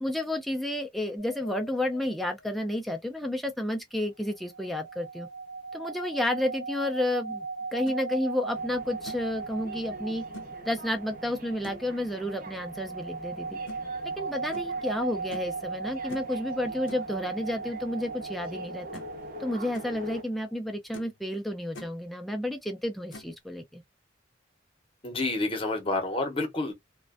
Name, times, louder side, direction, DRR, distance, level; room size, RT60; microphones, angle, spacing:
voice 1, 0.0-5.3 5.7-7.5 7.7-10.2 10.7-13.5 14.2-19.0 19.4-23.8, left 1 dB, ahead, 0.3 m, -31 dB
sound 1, 1.2-2.3 4.3-20.4, right 4 dB, 65° right, 0.9 m, -38 dB
sound 2, 7.6-8.0 8.5-8.6 9.1-9.4 10.3-10.5 11.6-11.9 13.7-13.8 14.5-14.7 15.3-15.5 16.1-16.4 16.9-17.1 18.4-18.5 18.9-19.2 19.5-19.9 20.5-20.6 20.9-21.2 21.5-21.9 23.1-23.4, left 1 dB, 90° left, 0.6 m, -45 dB
sound 3, 8.5-20.2, equal, 45° right, 0.6 m, -45 dB
voice 2, 25.0-26.7, left 2 dB, 30° left, 0.7 m, -29 dB
2.4 x 2.1 x 2.4 m
head